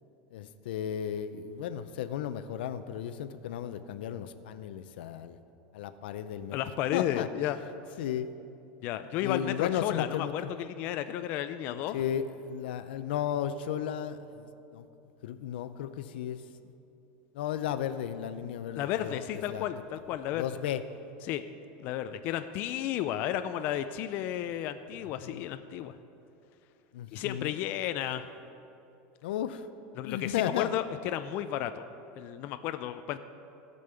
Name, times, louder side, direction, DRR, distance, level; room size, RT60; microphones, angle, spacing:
voice 1, 0.3-5.4 5.7-6.6 6.9-7.3 8.0-8.3 9.2-10.3 11.7-14.8 15.2-16.4 17.3-19.2 19.5-19.7 20.3-20.8 25.2-25.4 26.9-27.5 29.2-29.6 30.0-30.7, left 10 dB, 85° left, 12 dB, 0.6 m, -34 dB
voice 2, 6.5-7.6 8.8-12.0 18.8-20.5 21.2-21.4 21.8-25.9 27.1-28.2 30.0-31.8 32.1-33.2, left 11 dB, 35° left, 10 dB, 0.3 m, -33 dB
16.0 x 5.4 x 6.8 m, 2.8 s
supercardioid pair, 175°, 5 cm